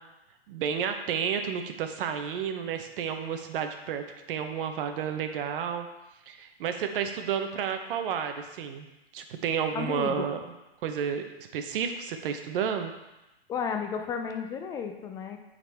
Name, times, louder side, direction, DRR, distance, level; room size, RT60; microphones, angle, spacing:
voice 1, 0.5-5.9 6.3-8.9 9.1-10.4 10.8-11.2 11.5-12.9, right 7 dB, 60° right, 7 dB, 0.9 m, -31 dB
voice 2, 9.7-10.3 13.5-15.4, left 6 dB, 10° left, 5 dB, 0.3 m, -33 dB
8.8 x 4.1 x 3.4 m, 1.0 s
hypercardioid pair, 125°, 31 cm